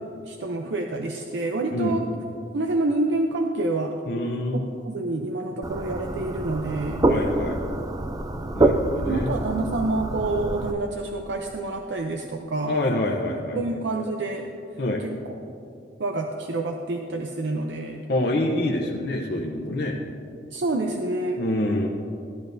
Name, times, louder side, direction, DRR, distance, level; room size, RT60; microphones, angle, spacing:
voice 1, 0.2-2.1 2.5-4.0 4.5-7.0 9.1-12.8 13.6-14.5 15.0-15.1 16.0-18.0 20.5-21.4, right 2 dB, 85° right, 3 dB, 0.6 m, -27 dB
voice 2, 1.7-2.0 4.1-4.7 7.0-7.6 8.5-9.3 12.6-13.6 14.8-15.0 18.1-20.0 21.4-21.9, left 1 dB, 65° left, -2 dB, 0.8 m, -26 dB
sound 1, 5.6-10.7, right 2 dB, 20° right, 0.4 m, -26 dB
14.0 x 12.0 x 2.7 m, 2.6 s
head